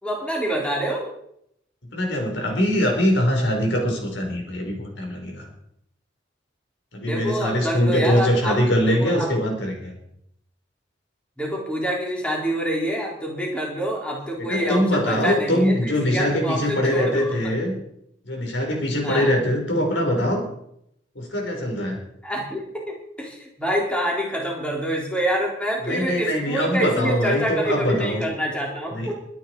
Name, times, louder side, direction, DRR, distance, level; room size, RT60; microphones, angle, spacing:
voice 1, 0.0-1.1 7.0-8.6 8.9-9.3 11.4-17.4 19.0-19.3 22.2-29.1, equal, 5° left, -2 dB, 4.3 m, -26 dB
voice 2, 1.9-5.5 6.9-9.9 14.4-17.7 18.2-20.4 21.1-22.0 25.8-28.2 28.9-29.1, equal, 65° left, 2 dB, 5.1 m, -22 dB
24.5 x 9.9 x 4.8 m, 0.73 s
head